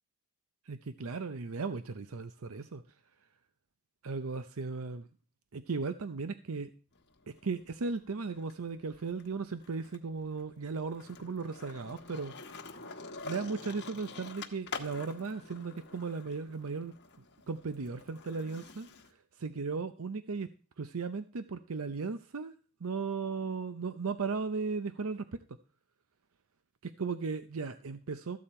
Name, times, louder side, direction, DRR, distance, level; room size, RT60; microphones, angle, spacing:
voice 1, 0.6-2.8 4.0-5.1 5.5-6.7 7.3-12.5 13.2-20.5 20.8-22.5 22.8-25.2 26.8-28.4, right 4 dB, 65° right, 11 dB, 0.6 m, -36 dB
Skateboard, 6.9-8.5 8.9-19.1, left 4 dB, 50° left, 1.3 m, -47 dB
14.0 x 8.5 x 4.3 m, 0.37 s
head